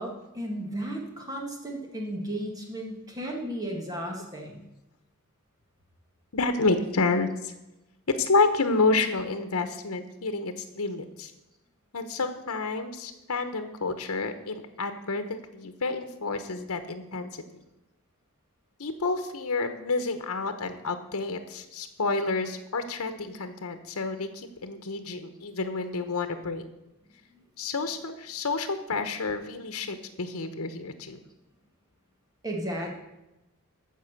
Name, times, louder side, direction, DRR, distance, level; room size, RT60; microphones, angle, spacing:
voice 1, 0.0-4.6 32.4-32.9, right 1 dB, 15° right, 0 dB, 1.9 m, -34 dB
voice 2, 6.3-7.5 8.1-11.3 11.9-17.4 18.8-26.7 27.6-31.2, left 3 dB, 85° left, 8 dB, 0.9 m, -29 dB
14.5 x 5.5 x 6.6 m, 0.95 s
head